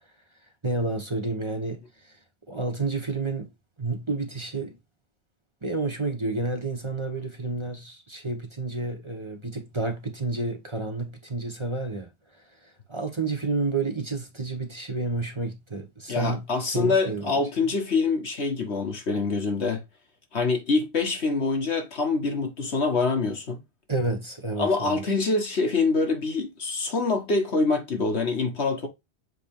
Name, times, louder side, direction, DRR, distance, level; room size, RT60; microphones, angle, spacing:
voice 1, 0.6-2.1 2.5-3.5 3.8-4.8 5.6-12.1 12.6-16.5 16.7-17.4 23.9-25.0, right 3 dB, 25° right, 1.1 m, -30 dB
voice 2, 16.1-19.8 20.3-23.6 24.6-28.9, left 4 dB, 75° left, 1.8 m, -25 dB
7.6 x 3.4 x 3.6 m
omnidirectional pair, 1.1 m